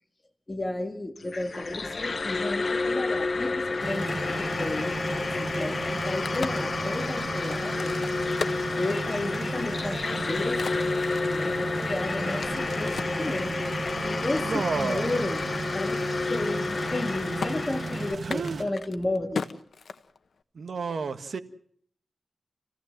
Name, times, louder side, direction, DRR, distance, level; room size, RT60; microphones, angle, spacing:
voice 1, 0.5-8.0 8.8-10.9 11.3-13.6 14.0-15.4 15.7-19.5, left 2 dB, 25° left, 5 dB, 3.0 m, -33 dB
sound 1, 1.2-18.2, left 3 dB, 50° left, 1.3 m, -30 dB
sound 2, 3.8-18.6, right 3 dB, 60° right, 1.3 m, -36 dB
Crack, 5.9-9.4 9.9-13.2 13.8-15.2 15.5-15.6 15.9-16.3 16.5-17.1 17.4-17.5 18.2-20.4, left 5 dB, 75° left, 1.4 m, -38 dB
voice 2, 14.4-15.2 18.2-18.6 20.5-21.4, right 5 dB, 75° right, 10 dB, 1.6 m, -31 dB
29.0 x 17.0 x 7.5 m, 0.62 s
wide cardioid pair, 90°, 0 cm